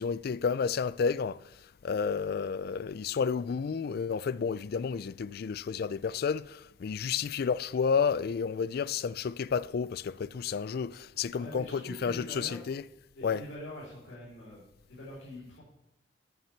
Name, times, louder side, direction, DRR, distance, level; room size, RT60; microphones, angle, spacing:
voice 1, 0.0-1.4 1.8-12.8 13.2-13.4, left 6 dB, 55° left, 0.3 m, -31 dB
voice 2, 11.3-12.6 13.1-15.6, left 1 dB, 90° left, 4.1 m, -44 dB
9.2 x 7.2 x 7.2 m
head